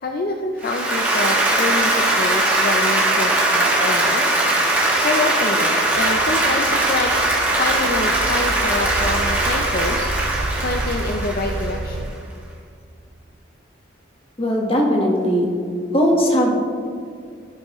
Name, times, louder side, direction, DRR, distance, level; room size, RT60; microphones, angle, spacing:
voice 1, 0.0-4.4 4.7-7.1 7.6-12.2, left 2 dB, 50° left, 3 dB, 0.5 m, -26 dB
Applause, 0.6-12.0, right 2 dB, 10° right, 1.8 m, -20 dB
sound 1, 5.8-12.1, right 2 dB, 45° right, 0.5 m, -30 dB
voice 2, 14.4-15.5 15.9-16.5, equal, 30° left, -1 dB, 1.4 m, -18 dB
13.0 x 6.4 x 3.1 m, 2.3 s
head